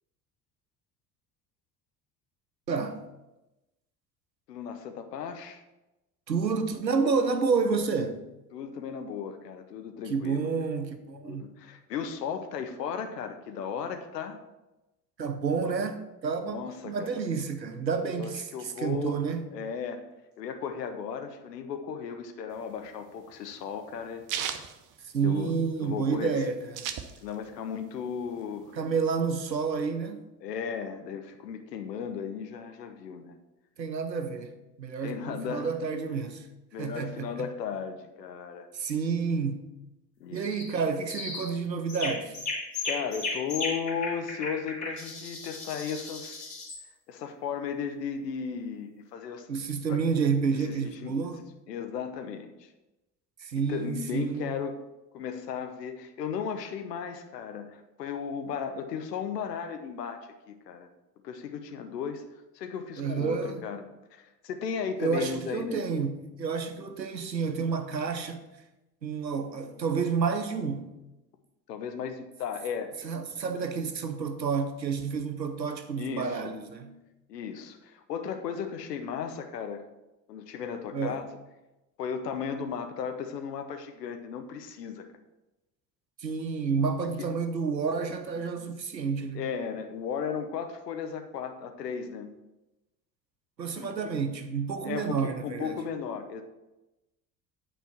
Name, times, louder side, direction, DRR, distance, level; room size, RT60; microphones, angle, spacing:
voice 1, 2.7-3.0 6.3-8.2 10.1-11.5 15.2-19.5 25.0-26.9 28.7-30.2 33.8-34.5 34.8-36.5 36.8-37.5 38.7-39.7 40.3-42.4 49.5-51.4 53.4-54.6 63.0-63.7 65.0-68.4 69.0-70.9 73.0-77.0 80.9-81.2 86.2-89.5 93.6-95.8, right 5 dB, 90° right, 0.7 m, -30 dB
voice 2, 4.5-5.6 8.5-10.5 11.2-14.4 16.4-17.2 18.2-19.2 19.5-20.0 20.4-24.2 25.2-25.5 25.8-26.3 27.2-28.7 30.4-33.3 35.0-35.7 36.7-38.7 40.2-40.5 42.8-46.4 47.1-49.5 49.9-50.0 50.5-51.1 51.7-52.7 53.7-54.8 55.1-60.9 61.2-62.2 62.5-63.8 64.1-65.8 71.7-72.9 75.9-76.5 77.3-79.8 80.3-81.2 82.0-85.1 87.2-87.3 88.6-88.7 89.3-92.3 93.8-94.0 94.8-96.4, left 7 dB, 75° left, 1.0 m, -35 dB
sound 1, 22.6-25.7 26.0-26.1 26.3-27.6 28.0-29.1, right 9 dB, 40° right, 0.8 m, -36 dB
sound 2, 40.4-40.7 41.1-41.5 41.9-46.8, left 3 dB, 35° left, 2.9 m, -35 dB
9.2 x 4.4 x 5.8 m
figure-of-eight pair, 60°, 49 cm